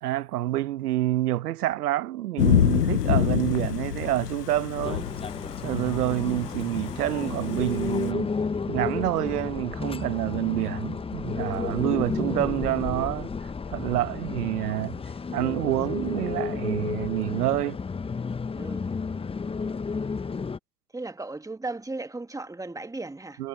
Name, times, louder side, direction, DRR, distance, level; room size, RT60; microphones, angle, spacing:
voice 1, 0.0-5.1 5.6-8.3 8.7-13.3 13.7-15.0 15.3-17.8 23.4-23.5, right 14 dB, 75° right, 1.3 m, -27 dB
Thunder / Rain, 2.4-8.1, left 11 dB, 90° left, 0.9 m, -27 dB
sound 1, 4.8-20.6, left 5 dB, 10° left, 0.8 m, -32 dB
voice 2, 20.9-23.4, right 2 dB, 5° right, 1.9 m, -36 dB
hypercardioid pair, 85°, 46 cm